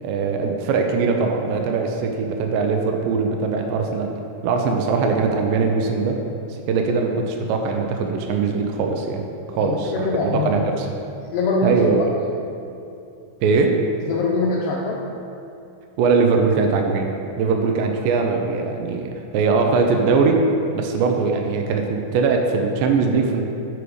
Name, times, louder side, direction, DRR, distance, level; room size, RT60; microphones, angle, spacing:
voice 1, 0.0-4.1 4.4-6.2 6.5-9.2 9.5-10.1 10.3-10.9 11.6-12.1 13.4-13.8 16.0-17.1 17.4-20.4 20.7-23.4, right 4 dB, 85° right, 3 dB, 2.0 m, -21 dB
voice 2, 9.5-10.6 11.3-11.8 14.1-15.0, left 3 dB, 85° left, -3 dB, 1.9 m, -23 dB
10.0 x 4.9 x 4.7 m, 2.7 s
omnidirectional pair, 4.7 m